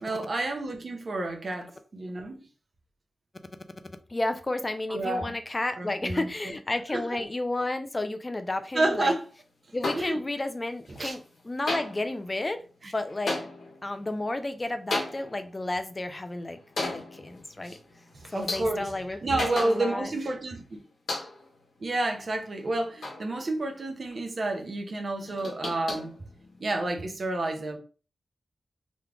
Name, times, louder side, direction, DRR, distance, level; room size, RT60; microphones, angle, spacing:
voice 1, 0.0-2.4 4.9-5.3 5.8-6.5 6.9-7.2 8.7-9.2 9.9-10.2 11.0-11.2 12.8-12.9 17.7-17.8 18.2-18.9 19.2-20.6 21.8-26.1 26.6-27.8, right 2 dB, 60° right, 0.8 m, -30 dB
voice 2, 4.1-9.1 9.7-13.3 13.8-16.6 16.9-17.8 18.3-20.1, left 2 dB, 35° left, 0.5 m, -32 dB
sound 1, 9.8-10.6 10.9-11.4 11.7-20.3 20.5-20.6 21.1-21.6 22.1-23.8 24.1-24.5 24.9-26.9, left 2 dB, 75° left, 1.1 m, -36 dB
3.1 x 2.3 x 3.4 m
cardioid pair, 45°, 0 cm